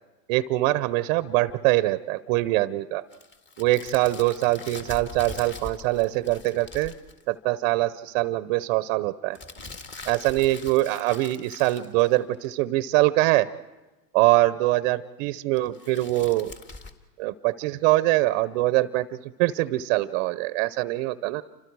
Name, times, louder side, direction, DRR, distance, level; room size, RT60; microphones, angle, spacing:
voice 1, 0.3-3.1 3.6-6.9 7.3-9.4 10.1-13.5 14.1-16.5 17.2-19.1 19.4-21.4, right 18 dB, 40° right, 14 dB, 0.7 m, -23 dB
sound 1, 3.1-7.2 9.3-12.5 15.6-16.9, left 3 dB, 20° left, 1.8 m, -43 dB
29.5 x 26.0 x 4.7 m, 1.1 s
hypercardioid pair, 130°, 50 cm